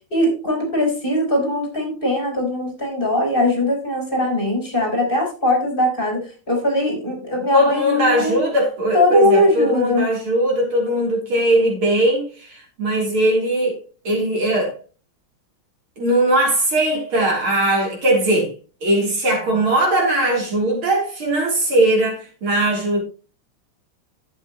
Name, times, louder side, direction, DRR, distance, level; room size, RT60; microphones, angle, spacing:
voice 1, 0.1-6.2 6.5-8.4 8.9-10.1, left 1 dB, 25° left, 4.3 m, -20 dB
voice 2, 7.5-13.8 14.0-14.8 16.0-18.5 18.8-23.0, right 1 dB, 75° right, 4.4 m, -19 dB
11.5 x 8.6 x 3.1 m
omnidirectional pair, 2.3 m